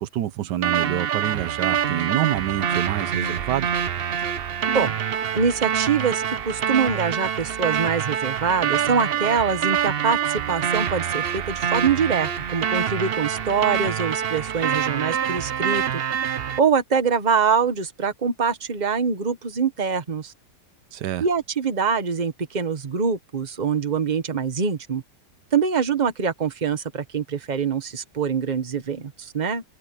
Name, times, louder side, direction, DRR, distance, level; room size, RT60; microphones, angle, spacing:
voice 1, 0.0-3.7 20.9-21.2, right 12 dB, 85° right, 1.4 m, -27 dB
sound 1, 0.6-16.6, right 8 dB, 50° right, 0.7 m, -25 dB
voice 2, 5.3-16.0 16.6-20.3 21.2-25.0 25.5-29.6, right 6 dB, 30° right, 1.3 m, -24 dB
omnidirectional pair, 1.8 m